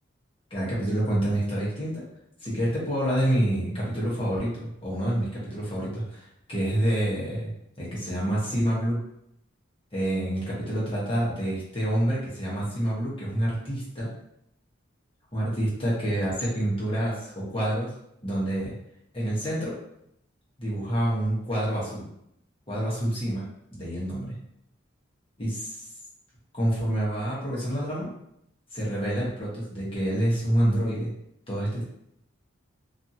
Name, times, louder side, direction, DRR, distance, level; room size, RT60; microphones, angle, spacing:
voice 1, 0.5-2.0 2.4-7.5 7.8-9.0 9.9-14.1 15.3-17.9 18.2-18.7 19.1-19.7 20.6-22.1 22.7-23.4 23.7-24.3 25.4-25.8 26.5-28.1 28.7-31.1 31.5-31.8, right 1 dB, 25° left, -6 dB, 0.9 m, -27 dB
2.7 x 2.4 x 2.7 m, 0.77 s
head